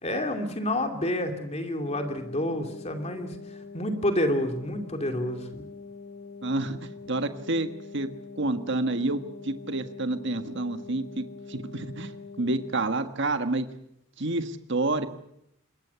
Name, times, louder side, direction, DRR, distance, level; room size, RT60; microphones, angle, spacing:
voice 1, 0.0-5.7, left 1 dB, 30° left, 5 dB, 2.8 m, -29 dB
sound 1, 1.8-12.8, left 4 dB, 70° left, 3.1 m, -44 dB
voice 2, 6.4-8.1 8.4-11.2 11.5-12.1 12.4-13.7 14.2-15.1, right 2 dB, 55° right, 9 dB, 1.7 m, -29 dB
26.0 x 21.5 x 7.1 m, 0.78 s
head